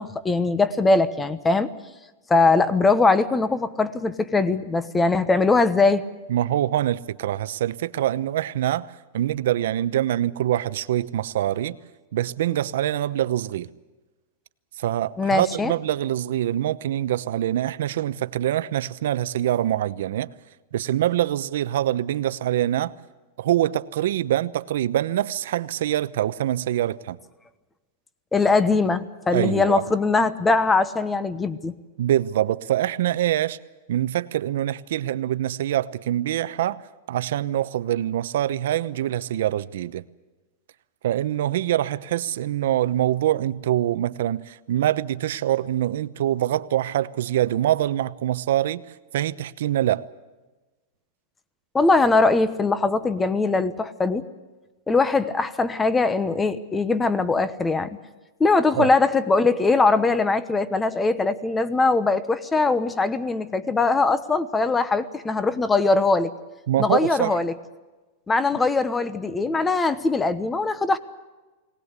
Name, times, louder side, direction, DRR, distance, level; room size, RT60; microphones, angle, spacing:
voice 1, 0.0-1.7 2.3-6.0 15.2-15.7 28.3-31.7 51.7-54.3 54.9-58.0 58.4-66.3 66.8-67.5 68.3-71.0, left 3 dB, 10° left, 1.1 m, -21 dB
voice 2, 6.3-11.8 12.1-13.7 14.8-20.3 20.7-22.9 23.4-27.2 29.3-29.8 32.0-33.6 33.9-36.8 37.1-40.0 41.0-48.8 49.1-50.1 58.8-58.9 66.7-67.3, right 12 dB, 75° right, 0.9 m, -24 dB
22.5 x 19.0 x 8.2 m
supercardioid pair, 150°, 0 cm